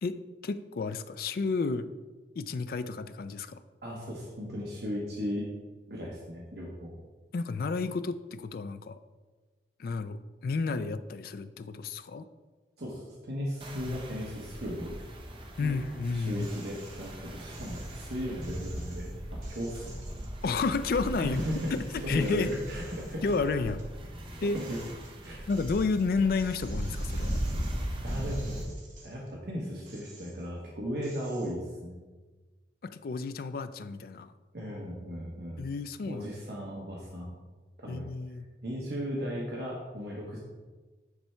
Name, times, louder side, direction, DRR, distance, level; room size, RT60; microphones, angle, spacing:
voice 1, 0.4-1.9 2.4-3.6 7.3-9.0 9.8-12.3 13.9-14.0 15.6-16.5 20.4-21.4 21.7-22.5 23.2-23.8 24.4-24.6 25.5-27.4 32.8-34.3 35.6-36.3 37.9-38.4, left 4 dB, 55° left, 12 dB, 0.3 m, -31 dB
voice 2, 3.8-5.5 5.9-7.0 12.8-15.0 15.6-15.8 16.1-20.0 21.1-23.3 24.3-24.8 25.2-25.5 28.0-28.7 29.0-32.0 34.5-35.6 36.0-37.4 37.8-38.1 38.6-40.4, equal, 65° right, -3 dB, 1.0 m, -36 dB
sound 1, 13.6-28.6, equal, 30° right, 0.9 m, -38 dB
sound 2, 16.4-17.1 17.5-21.0 21.3-23.9 24.3-29.3 29.8-30.6 31.0-31.6, right 3 dB, 45° right, 1.3 m, -53 dB
9.7 x 3.3 x 4.4 m, 1.3 s
head